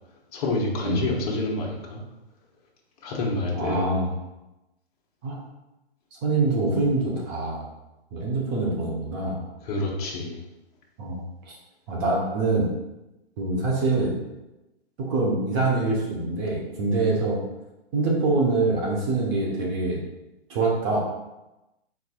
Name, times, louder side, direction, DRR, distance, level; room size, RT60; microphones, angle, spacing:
voice 1, 0.3-2.0 3.0-4.0 9.6-10.4, left 2 dB, 35° left, -2 dB, 0.9 m, -28 dB
voice 2, 3.5-4.1 5.2-5.4 6.2-7.6 8.1-9.5 11.0-11.5 11.9-12.7 13.4-14.1 15.0-17.4 17.9-20.0 20.5-21.0, right 3 dB, 20° right, -2 dB, 0.8 m, -25 dB
4.4 x 4.1 x 2.3 m, 0.99 s
hypercardioid pair, 145°, 33 cm